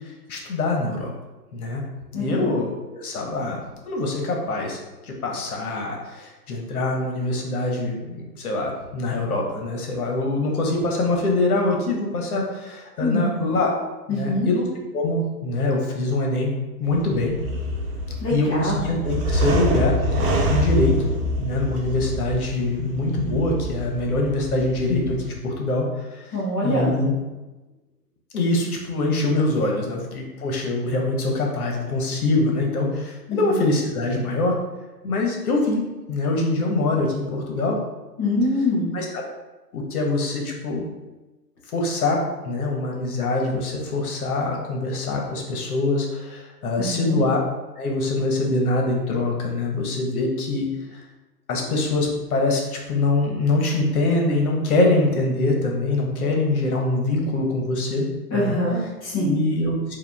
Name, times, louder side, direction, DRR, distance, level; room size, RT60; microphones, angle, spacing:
voice 1, 0.3-1.1 1.5-1.8 2.1-2.7 2.9-3.6 3.8-4.8 5.0-13.7 14.1-14.6 14.9-17.4 18.3-20.9 21.4-26.2 26.6-27.1 28.3-34.5 35.0-35.8 36.1-37.8 38.9-39.2 39.7-40.8 41.7-42.2 42.4-47.4 47.8-50.7 51.5-52.6 52.9-58.1 58.3-58.6 59.2-60.0, left 2 dB, 60° left, 0 dB, 1.3 m, -24 dB
voice 2, 2.1-2.5 13.0-13.3 14.1-14.5 18.2-18.8 26.3-26.9 33.3-33.6 38.2-38.9 46.8-47.2 58.3-59.3, left 1 dB, 10° left, -10 dB, 0.5 m, -24 dB
sound 1, 16.8-25.3, equal, 35° right, 0.7 m, -26 dB
4.8 x 2.7 x 3.5 m, 1.1 s
hypercardioid pair, 130°, 49 cm